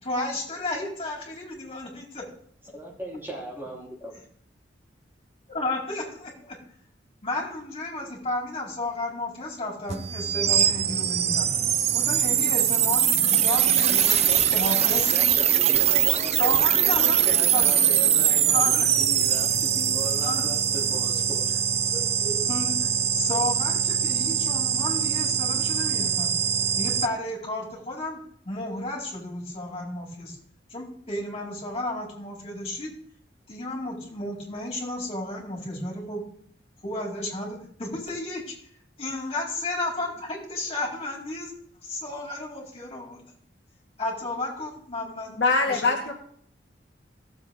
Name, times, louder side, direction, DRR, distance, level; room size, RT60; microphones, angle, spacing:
voice 1, 0.0-2.2 5.5-6.5 7.2-11.5 11.9-13.9 14.5-15.3 16.4-17.8 18.4-18.9 20.2-20.4 22.2-22.7 23.1-26.3 26.8-28.2 28.4-30.4 30.7-32.9 33.5-36.2 36.8-38.5 39.0-41.5 41.8-43.2 44.0-45.3 45.6-45.9, left 2 dB, 35° left, -3 dB, 4.6 m, -32 dB
voice 2, 2.7-4.1 13.9-21.6, equal, 10° right, -4 dB, 3.4 m, -38 dB
sound 1, 9.9-27.1, right 9 dB, 35° right, 0.5 m, -22 dB
voice 3, 45.4-46.1, left 3 dB, 65° left, 0 dB, 1.8 m, -22 dB
18.0 x 7.9 x 3.6 m, 0.62 s
head